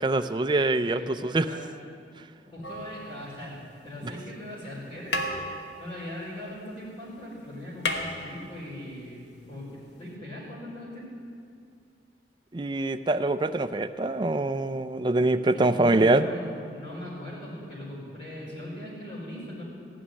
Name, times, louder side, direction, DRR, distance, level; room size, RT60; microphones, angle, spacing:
voice 1, 0.0-1.5 12.5-16.3, right 2 dB, 25° right, 10 dB, 0.4 m, -24 dB
voice 2, 0.8-1.7 2.1-2.2 2.5-5.3 5.8-11.1 15.5-19.6, left 1 dB, 35° left, -7 dB, 4.4 m, -40 dB
sound 1, 2.6-3.8 4.7-4.8 5.1-7.0 7.2-7.3 7.6-8.9 10.1-10.2, left 1 dB, 75° left, 1.3 m, -34 dB
15.5 x 6.3 x 9.7 m, 2.3 s
head